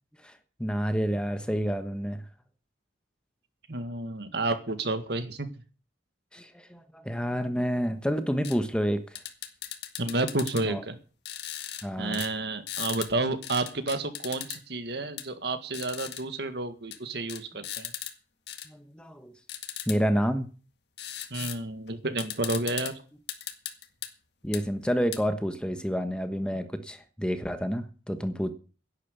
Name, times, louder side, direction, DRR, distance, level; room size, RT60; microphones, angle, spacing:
voice 1, 0.2-2.2 6.3-9.0 10.6-10.8 11.8-12.2 18.7-19.3 19.9-20.5 24.4-28.5, equal, 5° left, 8 dB, 1.2 m, -29 dB
voice 2, 3.7-5.5 10.0-11.0 12.0-17.9 21.3-23.0, right 2 dB, 60° right, 10 dB, 1.8 m, -31 dB
sound 1, 8.4-8.6 9.2-10.6 11.3-11.9 12.1-12.3 12.7-13.1 13.4-14.6 15.2-15.3 15.7-16.2 16.9-17.0 17.3-18.1 18.5-18.7 19.5-20.0 21.0-21.6 21.9-22.0 22.2-22.9 23.3-24.1 24.5-24.6 25.1-25.2, left 11 dB, 60° left, 1.8 m, -37 dB
11.0 x 10.5 x 8.3 m, 0.38 s
head